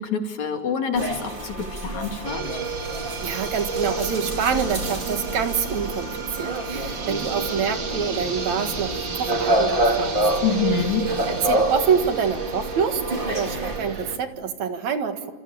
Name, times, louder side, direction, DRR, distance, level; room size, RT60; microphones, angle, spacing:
voice 1, 0.1-2.4 10.4-11.0, left 6 dB, 70° left, 4 dB, 4.0 m, -26 dB
sound 1, 0.9-13.8, right 1 dB, 20° right, 2.5 m, -28 dB
sound 2, 2.2-14.2, right 5 dB, 40° right, 2.7 m, -31 dB
voice 2, 3.2-10.2 11.3-13.0 13.3-15.3, right 6 dB, 70° right, 7 dB, 3.1 m, -26 dB
28.5 x 28.0 x 7.3 m, 1.3 s
omnidirectional pair, 3.3 m